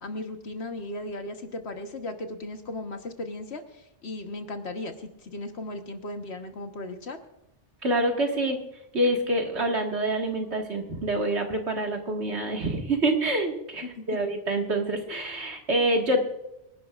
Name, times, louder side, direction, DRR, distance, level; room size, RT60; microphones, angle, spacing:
voice 1, 0.0-7.2 13.8-14.2, left 2 dB, 65° left, 5 dB, 1.6 m, -36 dB
voice 2, 7.8-8.6 8.9-16.2, right 1 dB, 70° right, 2 dB, 2.2 m, -26 dB
25.5 x 11.5 x 2.5 m, 0.85 s
omnidirectional pair, 1.2 m